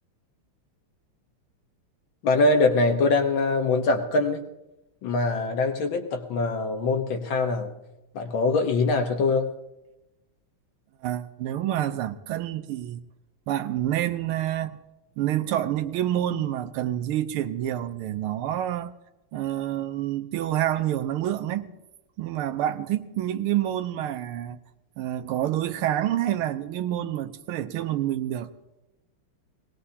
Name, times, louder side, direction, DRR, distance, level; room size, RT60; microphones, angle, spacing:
voice 1, 2.2-4.5 5.0-7.7 8.1-9.5, left 3 dB, 65° left, 1.8 m, -23 dB
voice 2, 11.0-13.0 13.5-14.8 15.2-18.9 19.3-21.7 22.2-24.6 25.0-28.5, right 12 dB, 80° right, 1.6 m, -28 dB
21.0 x 18.0 x 2.8 m
omnidirectional pair, 2.4 m